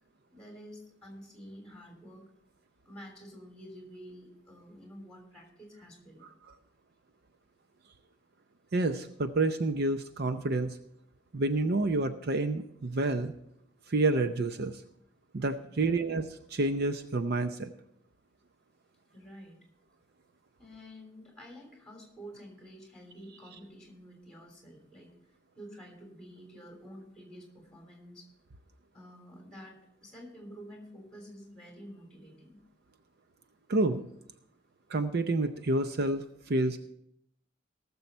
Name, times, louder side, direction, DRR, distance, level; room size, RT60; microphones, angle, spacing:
voice 1, 0.3-2.2 2.8-6.2 15.6-16.0 19.1-19.6 20.6-28.3 28.9-32.6, equal, 5° left, 1 dB, 3.4 m, -49 dB
voice 2, 8.7-10.8 11.3-13.3 13.9-14.8 15.3-17.7 33.7-34.0 34.9-36.8, right 2 dB, 55° right, 9 dB, 0.6 m, -29 dB
18.5 x 7.1 x 4.4 m, 0.74 s
head